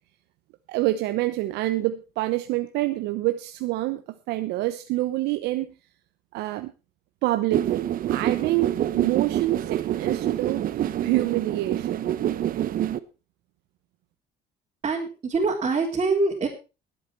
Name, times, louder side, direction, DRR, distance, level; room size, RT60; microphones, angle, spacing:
voice 1, 0.7-4.0 4.3-5.7 6.3-6.7 7.2-12.1, right 17 dB, 90° right, 0.9 m, -27 dB
sound 1, 7.5-13.0, right 11 dB, 55° right, 1.0 m, -26 dB
voice 2, 14.8-16.5, right 3 dB, 35° right, 3.6 m, -24 dB
19.0 x 8.8 x 4.5 m
cardioid pair, 110°, 17 cm